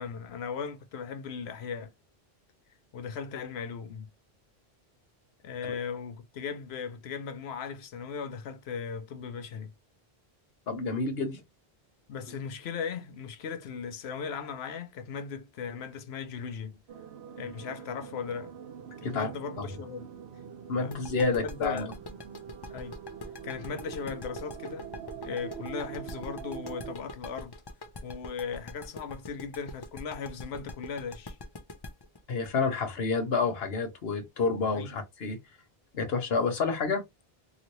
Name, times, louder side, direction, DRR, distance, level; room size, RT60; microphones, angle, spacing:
voice 1, 0.0-1.9 2.9-4.1 5.4-9.7 12.1-16.8 17.4-18.5 19.0-20.1 20.8-21.9 22.7-23.0 23.4-24.9 25.2-27.5 28.0-31.4 34.7-35.0, left 6 dB, 90° left, 0.9 m, -37 dB
voice 2, 10.7-11.4 19.0-19.3 19.6-19.7 20.7-21.8 32.3-35.4 35.9-37.0, left 4 dB, 75° left, 1.1 m, -29 dB
sound 1, 16.9-26.9, right 8 dB, 80° right, 0.9 m, -44 dB
sound 2, 20.9-33.6, left 2 dB, 35° left, 0.4 m, -43 dB
3.0 x 2.6 x 2.9 m
omnidirectional pair, 1.1 m